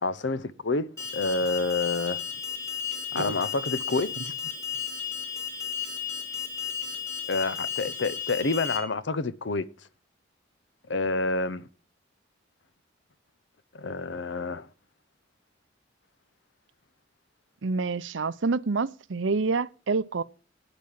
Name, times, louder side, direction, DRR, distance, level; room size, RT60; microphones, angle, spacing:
voice 1, 0.0-2.2 3.1-4.3 7.3-9.6 10.9-11.7 13.7-14.7, left 3 dB, 70° left, 0.8 m, -28 dB
Alarm, 1.0-8.8, left 7 dB, 20° left, 2.8 m, -34 dB
voice 2, 17.6-20.2, right 4 dB, 75° right, 0.6 m, -27 dB
9.0 x 8.4 x 7.5 m
head